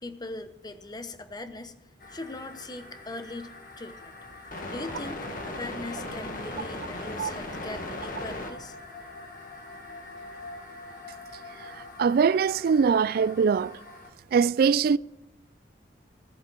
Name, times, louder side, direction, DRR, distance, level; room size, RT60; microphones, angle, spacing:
voice 1, 0.0-1.7 2.1-4.1 4.7-8.8, left 2 dB, 25° left, 0.9 m, -40 dB
sound 1, 2.0-14.1, left 2 dB, 50° left, 1.9 m, -40 dB
voice 2, 12.0-13.7 14.3-15.0, right 6 dB, 60° right, 0.3 m, -22 dB
16.0 x 7.4 x 6.0 m
head